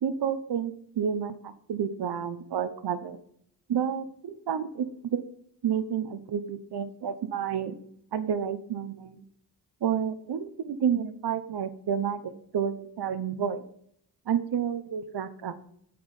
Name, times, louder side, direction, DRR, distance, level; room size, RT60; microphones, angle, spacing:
voice 1, 0.0-3.2 3.7-5.2 5.6-7.7 8.1-9.2 9.8-13.7 14.3-15.6, right 8 dB, 70° right, 12 dB, 1.0 m, -30 dB
8.8 x 7.8 x 5.4 m, 0.68 s
cardioid pair, 80°, 41 cm